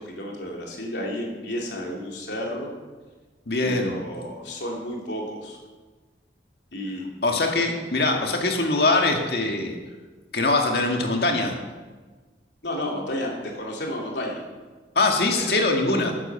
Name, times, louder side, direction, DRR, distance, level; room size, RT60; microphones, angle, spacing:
voice 1, 0.0-2.7 3.6-5.6 6.7-7.0 12.6-14.4 15.3-15.6, left 1 dB, 75° left, -1 dB, 3.3 m, -32 dB
voice 2, 3.5-4.0 7.2-9.8 10.3-11.6 15.0-16.1, left 2 dB, 60° left, 2 dB, 2.0 m, -22 dB
12.5 x 9.9 x 7.0 m, 1.3 s
head